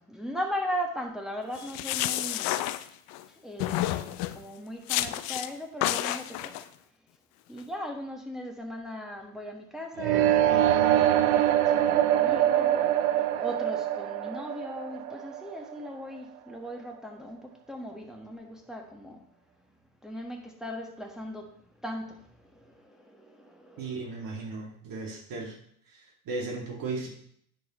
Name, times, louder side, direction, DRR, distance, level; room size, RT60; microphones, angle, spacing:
voice 1, 0.0-2.5 3.3-6.7 7.5-12.8 13.3-19.2 20.0-24.5, equal, ahead, 1 dB, 1.4 m, -38 dB
sound 1, 1.5-3.2 3.6-4.4 4.9-5.5 5.8-6.6, left 14 dB, 55° left, 0.6 m, -30 dB
sound 2, 10.0-15.9, right 11 dB, 75° right, 0.7 m, -24 dB
voice 2, 23.8-25.6 26.3-27.1, right 3 dB, 50° right, -1 dB, 2.3 m, -35 dB
10.5 x 4.7 x 3.1 m, 0.66 s
hypercardioid pair, 70°, 44 cm